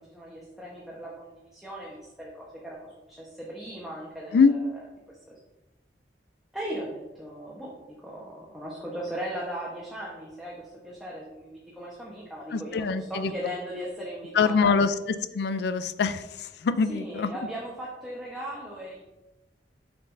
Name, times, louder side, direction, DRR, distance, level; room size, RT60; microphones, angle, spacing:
voice 1, 0.0-4.6 6.5-14.7 16.9-19.0, equal, ahead, -5 dB, 1.0 m, -38 dB
voice 2, 12.5-13.5 14.3-14.9 15.3-17.3, left 5 dB, 65° left, 13 dB, 0.4 m, -24 dB
7.3 x 5.9 x 2.6 m, 1.0 s
head